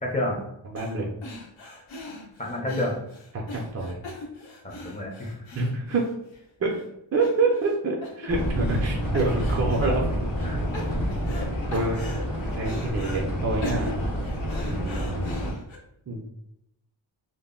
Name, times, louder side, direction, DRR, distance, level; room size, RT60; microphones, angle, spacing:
voice 1, 0.0-0.4 2.4-2.9 4.6-5.7 10.4-10.6 14.6-14.9, left 1 dB, 15° left, -1 dB, 0.5 m, -30 dB
voice 2, 0.7-1.0 3.3-4.0 5.5-6.1 6.6-6.7 7.1-10.1 11.7-12.0 12.6-14.0 14.6-15.4 16.1-16.3, right 3 dB, 35° right, -2 dB, 0.4 m, -27 dB
sound 1, 0.8-1.0 1.2-6.4 6.7-6.8 7.2-7.8 8.0-8.9 9.1-9.9 10.4-11.5 11.7-13.2 13.6-15.8, left 2 dB, 75° left, 0.7 m, -40 dB
sound 2, 8.3-15.5, equal, 45° left, 0.8 m, -28 dB
2.1 x 2.0 x 3.6 m, 0.80 s
wide cardioid pair, 110°, 47 cm